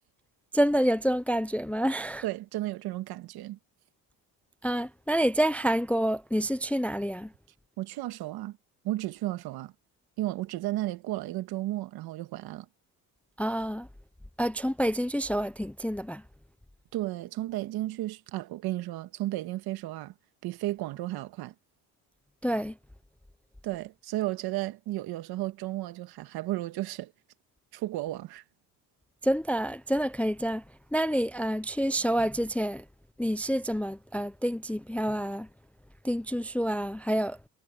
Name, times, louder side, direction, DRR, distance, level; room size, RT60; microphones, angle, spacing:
voice 1, 0.5-2.2 4.6-7.3 13.4-13.9 14.4-16.2 22.4-22.8 29.2-30.6 30.9-32.8 33.2-35.5 36.0-37.4, equal, 5° left, 0.4 m, -28 dB
voice 2, 2.2-3.6 7.8-8.6 8.8-9.7 10.2-12.7 16.9-20.1 20.4-21.5 23.6-27.1 27.7-28.4, right 16 dB, 75° right, 1.8 m, -33 dB
supercardioid pair, 75°, 37 cm